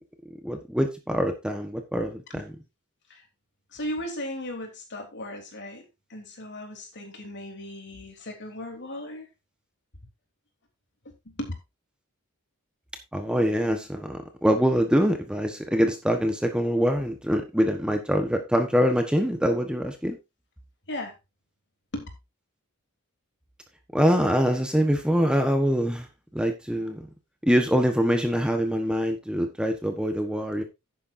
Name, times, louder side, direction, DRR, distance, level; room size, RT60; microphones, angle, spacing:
voice 1, 0.4-2.6 13.1-20.2 23.9-26.1 26.3-27.1 27.4-30.6, equal, 5° right, 1.3 m, -24 dB
voice 2, 3.7-9.3 11.3-11.5 20.9-21.2 21.9-22.1, left 1 dB, 55° left, 3.5 m, -36 dB
11.0 x 9.6 x 2.7 m
head